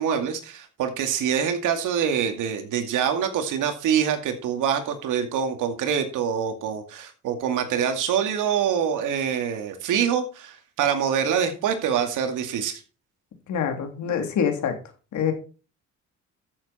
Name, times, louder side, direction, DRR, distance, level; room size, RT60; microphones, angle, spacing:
voice 1, 0.0-12.8, right 8 dB, 85° right, 6 dB, 2.3 m, -25 dB
voice 2, 13.5-14.7 15.1-15.3, left 7 dB, 70° left, 5 dB, 3.1 m, -25 dB
13.5 x 7.4 x 4.3 m, 0.35 s
cardioid pair, 90°, 30 cm